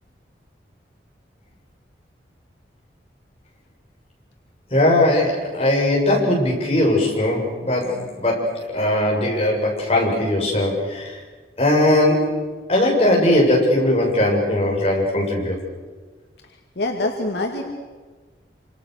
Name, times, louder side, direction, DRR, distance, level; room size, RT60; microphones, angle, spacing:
voice 1, 4.7-11.2 11.6-12.4 12.7-15.5, left 1 dB, 35° left, -2 dB, 7.7 m, -19 dB
voice 2, 16.8-17.6, left 2 dB, 70° left, 2 dB, 2.6 m, -24 dB
27.5 x 27.0 x 6.8 m, 1.4 s
head